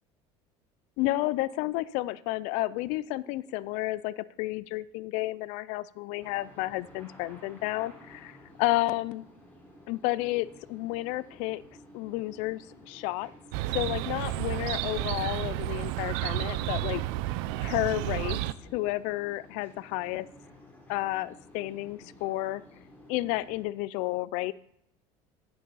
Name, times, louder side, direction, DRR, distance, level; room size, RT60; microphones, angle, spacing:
voice 1, 1.0-9.2 9.9-11.6 11.9-13.3 13.7-17.0 17.6-18.4 18.7-20.3 20.9-22.6 23.1-24.5, left 18 dB, 70° left, 19 dB, 0.4 m, -31 dB
sound 1, 6.2-23.6, left 1 dB, 15° left, 3.8 m, -53 dB
Chirp tweet, 13.5-18.5, right 16 dB, 80° right, 0.5 m, -31 dB
10.0 x 10.0 x 4.1 m, 0.72 s
cardioid pair, 135°, 13 cm